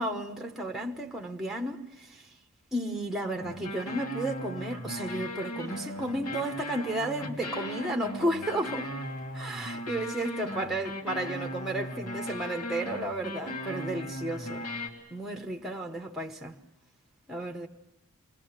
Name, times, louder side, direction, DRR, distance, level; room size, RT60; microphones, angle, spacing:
voice 1, 0.0-2.3 2.7-8.9 9.3-14.7 15.1-16.6 17.3-17.7, right 1 dB, ahead, 1.1 m, -33 dB
sound 1, 3.4-14.9, equal, 85° left, 2.6 m, -37 dB
28.0 x 21.0 x 7.4 m
head